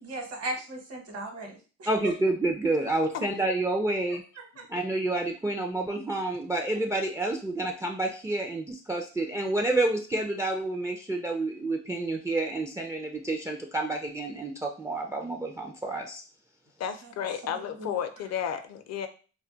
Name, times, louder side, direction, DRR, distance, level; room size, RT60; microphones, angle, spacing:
voice 1, 0.0-2.1 4.4-4.7 6.7-6.8 17.0-17.1 17.5-18.0, right 1 dB, 55° right, 3 dB, 1.0 m, -38 dB
voice 2, 1.9-4.2 4.7-16.2, right 2 dB, 10° right, 2 dB, 0.3 m, -29 dB
voice 3, 16.8-19.1, left 8 dB, 60° left, 8 dB, 0.5 m, -33 dB
2.2 x 2.2 x 3.8 m, 0.37 s
cardioid pair, 90°, 30 cm